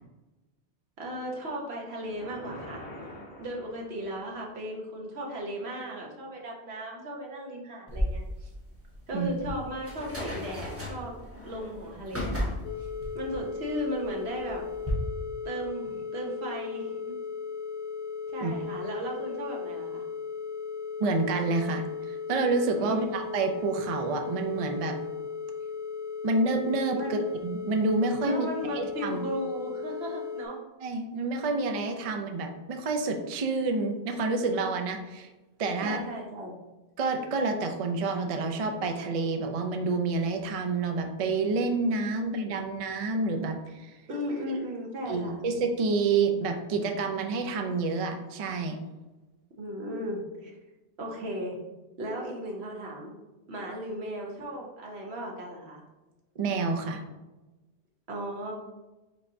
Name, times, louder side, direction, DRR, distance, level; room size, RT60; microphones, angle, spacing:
voice 1, 1.0-2.9 3.4-8.5 9.1-11.2 11.4-12.5 13.1-14.6 15.4-17.2 18.3-20.0 22.8-23.1 27.0-27.2 28.2-30.6 35.8-36.5 44.1-45.4 49.6-50.5 51.0-51.6 52.0-53.1 53.5-55.8 58.1-58.5, equal, 70° right, -1 dB, 1.2 m, -36 dB
sound 1, 2.0-4.3, left 1 dB, 80° left, 1.4 m, -44 dB
sound 2, 7.9-14.9, left 1 dB, 15° right, 0.9 m, -36 dB
sound 3, 12.6-30.5, left 6 dB, 55° left, 0.5 m, -36 dB
voice 2, 21.0-25.0 26.2-29.2 30.8-35.3 35.6-36.0 37.0-44.0 45.1-48.8 56.4-57.0, right 3 dB, 55° right, 5 dB, 0.4 m, -28 dB
4.7 x 4.2 x 2.6 m, 1.1 s
omnidirectional pair, 1.1 m